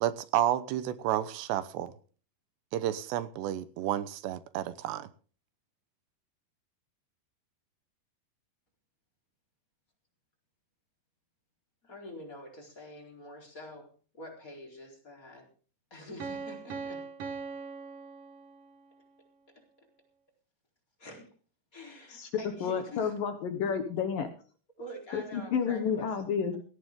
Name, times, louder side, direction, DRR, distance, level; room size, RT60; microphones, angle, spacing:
voice 1, 0.0-1.9 2.7-5.1, right 12 dB, 85° right, 3.2 m, -31 dB
voice 2, 11.8-15.5 15.9-17.0 19.5-19.9 21.0-21.3 21.7-23.2 24.8-26.2, left 1 dB, 20° left, 4.4 m, -47 dB
Piano, 16.2-19.0, right 5 dB, 60° right, 1.7 m, -41 dB
voice 3, 22.6-24.3 25.1-26.5, left 6 dB, 65° left, 2.6 m, -30 dB
17.5 x 15.5 x 3.7 m
omnidirectional pair, 4.8 m